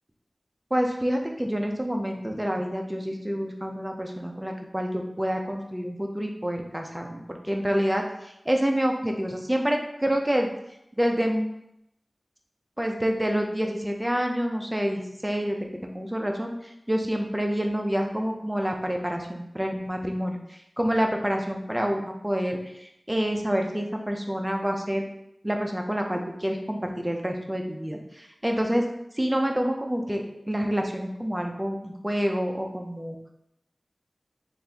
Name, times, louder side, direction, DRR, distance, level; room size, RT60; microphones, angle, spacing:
voice 1, 0.7-10.5 11.0-11.5 12.8-25.0 25.4-28.8 29.2-33.2, equal, 15° right, 2 dB, 0.5 m, -28 dB
4.1 x 2.5 x 3.4 m, 0.80 s
wide cardioid pair, 70°, 0 cm